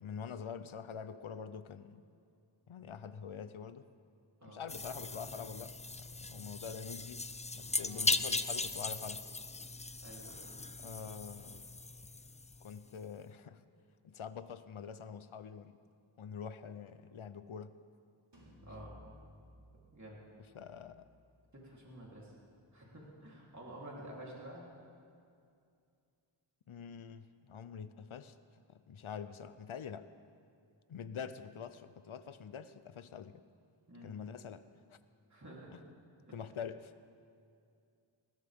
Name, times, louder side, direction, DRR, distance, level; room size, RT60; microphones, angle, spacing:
voice 1, 0.0-2.0 2.7-3.9 4.4-7.3 7.5-9.2 10.8-11.6 12.6-13.6 14.0-15.8 16.2-17.7 20.5-21.1 26.7-28.3 28.7-30.1 30.9-33.4 34.0-35.0 35.7-35.8 36.3-36.9, left 7 dB, 70° left, 13 dB, 0.7 m, -45 dB
sound 1, 4.7-12.8, left 3 dB, 15° left, 0.4 m, -38 dB
voice 2, 7.8-8.1 10.0-10.4 18.6-18.9 19.9-20.2 21.5-22.3 22.7-24.6 33.9-34.1 35.3-35.7 36.3-36.4, right 1 dB, 35° right, -5 dB, 3.6 m, -50 dB
sound 2, 18.3-24.0, left 1 dB, 55° right, 3.9 m, -60 dB
20.5 x 17.0 x 3.6 m, 2.4 s
wide cardioid pair, 65°, 50 cm